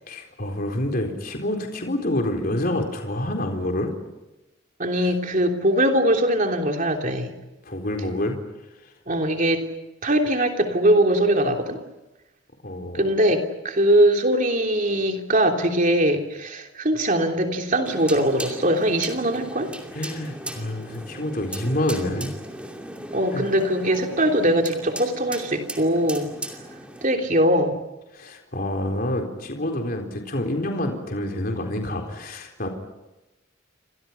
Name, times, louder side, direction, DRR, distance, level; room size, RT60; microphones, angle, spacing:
voice 1, 0.1-3.9 7.7-8.4 12.6-13.1 19.9-22.3 23.3-23.5 28.1-32.7, left 1 dB, 45° left, 3 dB, 4.0 m, -27 dB
voice 2, 4.8-7.3 9.1-9.7 10.0-11.8 12.9-19.7 23.1-26.3 27.0-27.8, right 1 dB, 40° right, 3 dB, 3.3 m, -21 dB
sound 1, 17.8-27.0, right 1 dB, 5° right, 2.7 m, -37 dB
29.5 x 25.5 x 5.9 m, 1.0 s
head